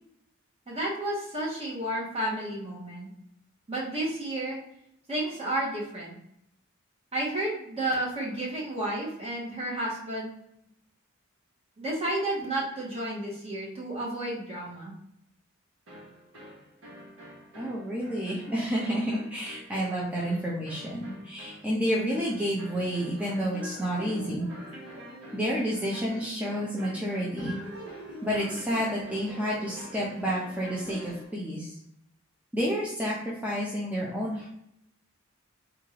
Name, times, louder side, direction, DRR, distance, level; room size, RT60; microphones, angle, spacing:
voice 1, 0.7-3.1 3.7-4.6 5.1-6.1 7.1-10.3 11.8-14.9, right 1 dB, 30° right, -4 dB, 1.2 m, -31 dB
sound 1, 15.9-31.3, equal, 70° right, 1.2 m, -45 dB
voice 2, 17.6-24.5 25.3-27.6 28.2-31.8 32.5-34.5, equal, 5° right, -6 dB, 0.6 m, -30 dB
3.6 x 2.4 x 3.2 m, 0.78 s
head